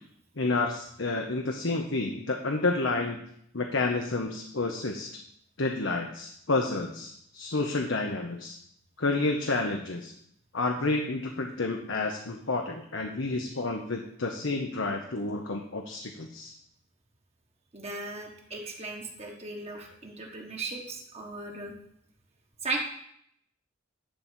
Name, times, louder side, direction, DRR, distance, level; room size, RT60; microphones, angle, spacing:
voice 1, 0.4-3.2 3.5-5.1 5.6-8.6 9.0-10.1 10.5-16.5, left 3 dB, 65° left, 2 dB, 0.9 m, -30 dB
voice 2, 17.7-21.7 22.6-22.8, right 3 dB, 30° right, 1 dB, 1.4 m, -37 dB
11.5 x 4.2 x 7.5 m, 0.71 s
head